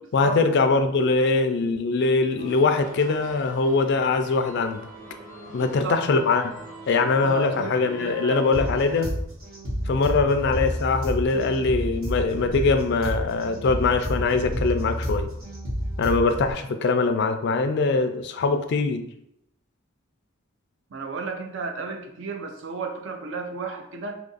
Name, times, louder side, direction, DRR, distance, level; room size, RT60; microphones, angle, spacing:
voice 1, 0.1-4.8 5.5-6.5 6.9-9.1 9.9-15.3 16.0-19.1, left 3 dB, 55° left, 8 dB, 0.3 m, -22 dB
sound 1, 2.4-9.1, right 1 dB, 40° right, 1.1 m, -43 dB
voice 2, 5.6-6.0 6.9-8.5 20.9-24.2, right 4 dB, 60° right, 4 dB, 0.5 m, -33 dB
sound 2, 8.5-16.5, equal, 80° right, 1.2 m, -30 dB
2.8 x 2.5 x 3.9 m, 0.77 s
head